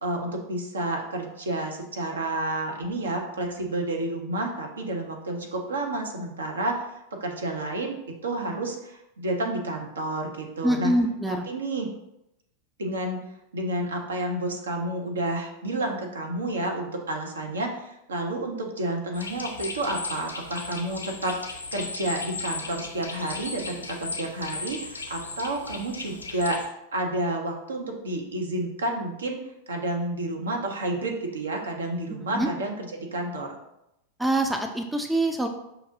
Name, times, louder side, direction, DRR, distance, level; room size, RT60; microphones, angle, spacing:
voice 1, 0.0-8.0 8.2-10.9 11.3-11.9 12.8-13.2 13.5-29.4 29.7-33.5, right 1 dB, 70° right, 2 dB, 0.7 m, -30 dB
voice 2, 10.6-11.5 32.3-32.5 34.2-35.5, right 1 dB, 5° right, 4 dB, 0.3 m, -24 dB
sound 1, 19.1-26.7, left 4 dB, 75° left, 0.6 m, -36 dB
5.6 x 2.6 x 2.8 m, 0.85 s
figure-of-eight pair, 90°, 0 cm